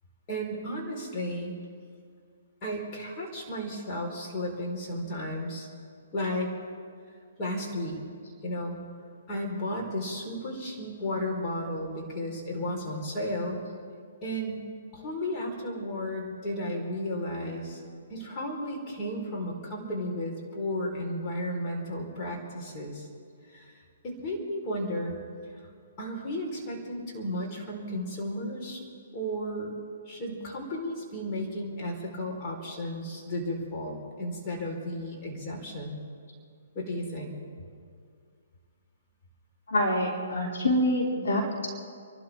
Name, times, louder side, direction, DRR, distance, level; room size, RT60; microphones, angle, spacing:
voice 1, 0.3-1.5 2.6-5.7 6.1-6.5 7.4-8.0 8.4-8.8 9.3-13.6 14.2-14.6 14.9-17.8 18.1-23.1 23.5-25.1 25.5-25.7 26.0-28.8 29.1-29.8 30.1-36.0 36.7-37.3, equal, 30° left, -1 dB, 4.3 m, -34 dB
voice 2, 39.7-41.5, left 1 dB, 65° left, -1 dB, 3.1 m, -26 dB
28.5 x 12.5 x 3.6 m, 2.2 s
figure-of-eight pair, 130°, 0 cm